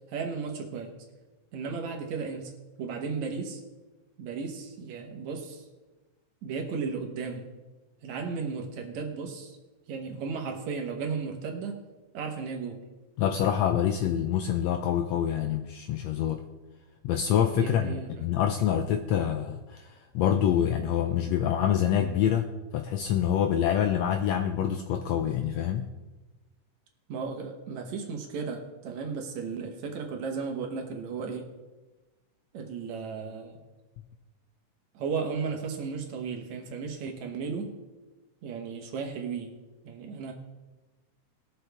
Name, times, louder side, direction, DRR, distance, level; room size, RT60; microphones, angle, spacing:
voice 1, 0.1-0.9 1.5-2.5 2.8-3.6 4.2-5.6 6.4-7.5 8.0-9.6 9.9-11.8 12.1-12.9 17.6-18.3 27.1-31.5 32.5-33.6 34.9-37.7 38.4-39.6 39.8-40.3, right 5 dB, 65° right, 3 dB, 2.4 m, -35 dB
voice 2, 13.2-16.4 17.0-22.5 22.7-25.9, left 9 dB, 85° left, 6 dB, 1.5 m, -26 dB
20.5 x 6.9 x 3.4 m, 1.1 s
omnidirectional pair, 3.6 m